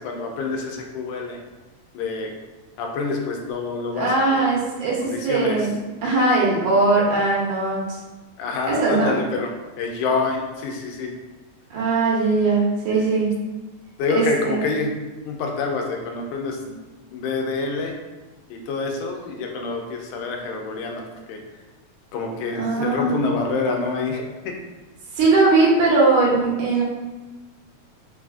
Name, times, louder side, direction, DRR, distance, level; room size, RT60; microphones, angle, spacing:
voice 1, 0.0-1.4 1.9-2.3 2.8-4.5 5.0-5.7 8.4-11.1 13.0-13.1 14.0-14.9 15.2-16.6 17.1-17.9 18.5-21.4 22.1-24.6, left 4 dB, 85° left, 1 dB, 2.0 m, -27 dB
voice 2, 4.0-5.7 6.0-8.0 8.7-9.1 11.7-13.3 14.1-14.6 16.7-16.8 22.6-23.2 25.1-26.8, right 3 dB, 85° right, -4 dB, 2.4 m, -20 dB
5.4 x 2.3 x 2.5 m, 1.2 s
omnidirectional pair, 3.5 m